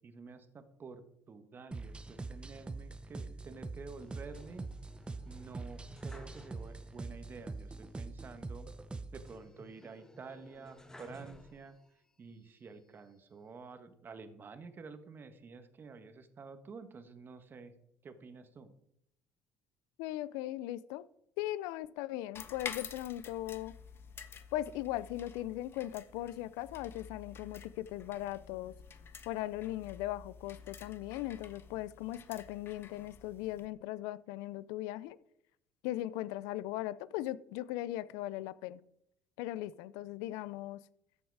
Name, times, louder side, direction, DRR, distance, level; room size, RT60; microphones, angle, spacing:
voice 1, 0.0-4.6 5.2-8.7 9.1-11.8 12.2-17.7 18.0-18.7, right 4 dB, 35° right, 1.5 m, -50 dB
sound 1, 1.7-9.4, right 3 dB, 15° right, 0.9 m, -44 dB
sound 2, 4.0-7.1 7.4-7.5 9.3-12.0 12.5-13.4, equal, 10° left, 1.5 m, -56 dB
voice 2, 20.0-21.1 21.4-23.7 24.5-28.7 29.3-35.2 35.8-38.8 39.4-40.8, left 15 dB, 85° left, 0.5 m, -38 dB
sound 3, 22.3-33.7, left 6 dB, 40° left, 1.3 m, -50 dB
13.5 x 8.0 x 4.8 m
supercardioid pair, 90°, 6 cm